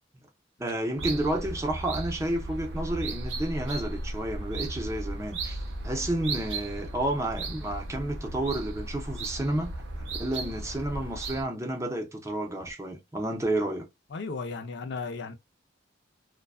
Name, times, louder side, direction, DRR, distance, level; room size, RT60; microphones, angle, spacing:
voice 1, 0.6-5.6 5.8-13.9, right 1 dB, 15° right, 0.6 m, -31 dB
sound 1, 1.0-11.4, right 2 dB, 70° right, 0.6 m, -36 dB
voice 2, 14.1-15.3, left 4 dB, 65° left, 0.5 m, -35 dB
2.4 x 2.2 x 2.3 m
head